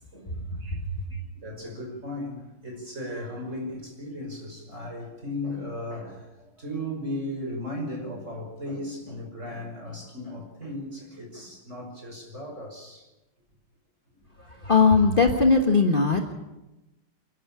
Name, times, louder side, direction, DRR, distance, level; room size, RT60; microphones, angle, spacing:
voice 1, 1.1-13.1, left 1 dB, 35° right, 1 dB, 5.9 m, -36 dB
voice 2, 14.5-16.3, left 4 dB, 30° left, 4 dB, 1.3 m, -20 dB
28.0 x 12.0 x 8.8 m, 1.0 s
omnidirectional pair, 2.3 m